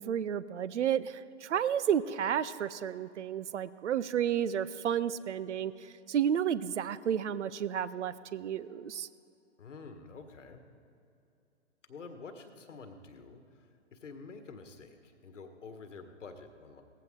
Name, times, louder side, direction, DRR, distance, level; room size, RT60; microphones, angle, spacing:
voice 1, 0.0-9.1, right 9 dB, 70° right, 17 dB, 0.6 m, -32 dB
voice 2, 9.6-10.6 11.9-16.8, left 4 dB, 75° left, 7 dB, 1.6 m, -48 dB
17.5 x 15.0 x 3.8 m, 2.7 s
figure-of-eight pair, 125°, 37 cm